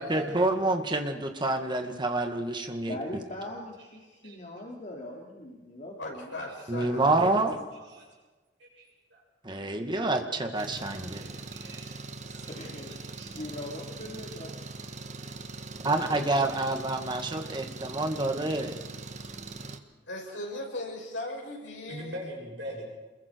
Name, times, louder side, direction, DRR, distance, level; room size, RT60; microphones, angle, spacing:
voice 1, 0.0-3.0 6.7-7.6 9.4-11.3 15.8-18.8, right 2 dB, 25° right, 5 dB, 2.0 m, -28 dB
voice 2, 2.9-6.4 10.0-10.1 12.3-14.5, left 1 dB, 45° left, -2 dB, 2.9 m, -41 dB
voice 3, 6.0-7.4 20.1-22.1, left 1 dB, 85° left, -1 dB, 6.5 m, -38 dB
Engine, 10.6-19.8, right 3 dB, 40° right, 1.5 m, -41 dB
voice 4, 11.2-11.9 12.3-12.5 13.2-13.4 21.9-22.8, equal, 70° right, -2 dB, 7.4 m, -41 dB
27.5 x 22.0 x 4.7 m, 1.3 s
head